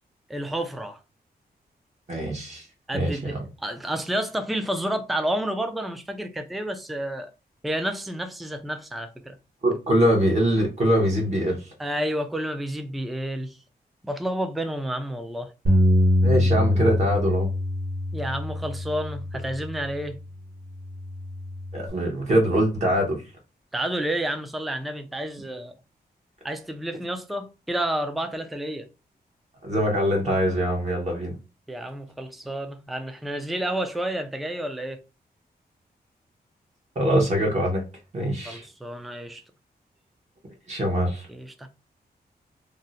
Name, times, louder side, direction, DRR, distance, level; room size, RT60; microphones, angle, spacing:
voice 1, 0.3-1.0 2.9-3.4 3.6-7.3 7.6-9.4 11.8-13.6 14.0-15.5 18.1-20.2 23.7-25.8 26.4-28.9 31.7-35.0 38.5-39.4 41.3-41.7, right 1 dB, ahead, 0.3 m, -30 dB
voice 2, 2.1-2.7 2.9-3.4 9.6-11.7 16.2-17.5 21.7-23.2 29.6-31.4 37.0-37.8 38.1-38.6 40.7-41.3, equal, 45° right, 0.8 m, -23 dB
Bass guitar, 15.7-20.1 20.7-21.9, left 1 dB, 60° right, 1.3 m, -24 dB
2.6 x 2.0 x 3.8 m
wide cardioid pair, 160°, 17 cm